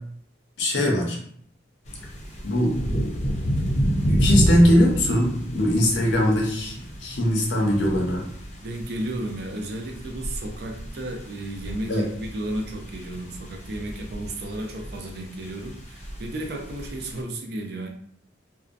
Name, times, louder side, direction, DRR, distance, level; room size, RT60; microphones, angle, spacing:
voice 1, 0.6-1.2 2.4-2.8 4.0-6.8 7.0-8.2 11.9-12.1, left 1 dB, 75° left, 0 dB, 0.7 m, -21 dB
sound 1, 1.9-17.2, equal, 40° left, 0.5 m, -30 dB
voice 2, 8.6-17.9, right 1 dB, 60° right, 3 dB, 0.4 m, -33 dB
2.6 x 2.1 x 2.4 m, 0.63 s
head